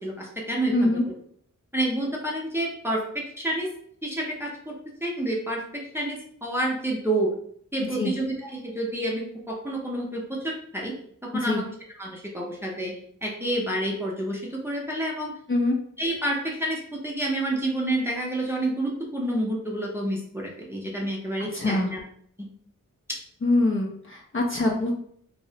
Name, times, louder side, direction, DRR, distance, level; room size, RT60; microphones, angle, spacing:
voice 1, 0.0-0.9 1.7-3.7 4.0-4.7 5.0-7.3 7.7-10.9 11.2-11.6 12.0-12.9 13.2-15.3 16.0-22.0 22.4-22.5 23.1-23.2, right 1 dB, 5° right, -3 dB, 0.6 m, -29 dB
voice 2, 0.7-1.0 8.0-8.1 11.3-11.6 15.5-15.8 21.5-21.9 23.4-24.9, left 2 dB, 40° left, -1 dB, 0.5 m, -24 dB
2.5 x 2.0 x 2.7 m, 0.63 s
wide cardioid pair, 70°, 33 cm